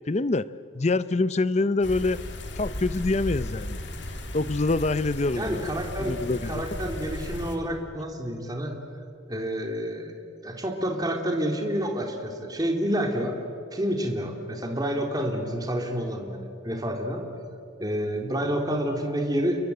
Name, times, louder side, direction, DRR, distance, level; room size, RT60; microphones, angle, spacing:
voice 1, 0.1-0.5 0.7-2.2 2.6-3.8 4.3-5.6 6.0-6.6, left 2 dB, 35° left, 16 dB, 0.5 m, -25 dB
sound 1, 1.8-7.6, left 1 dB, 60° left, 2.5 m, -35 dB
voice 2, 5.4-8.8 9.3-10.1 10.4-13.4 13.7-17.2 17.8-19.7, equal, 20° right, 3 dB, 2.4 m, -29 dB
28.5 x 22.5 x 7.9 m, 2.7 s
head